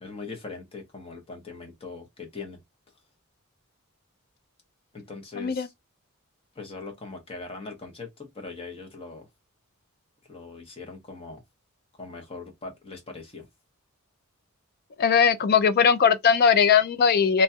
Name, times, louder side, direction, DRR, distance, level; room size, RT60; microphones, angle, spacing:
voice 1, 0.0-2.6 4.9-5.7 6.5-9.3 10.3-11.4 12.0-13.5, left 3 dB, 25° left, 0.9 m, -40 dB
voice 2, 5.4-5.7 15.0-17.4, left 6 dB, 45° left, 0.4 m, -19 dB
3.0 x 2.3 x 2.7 m
head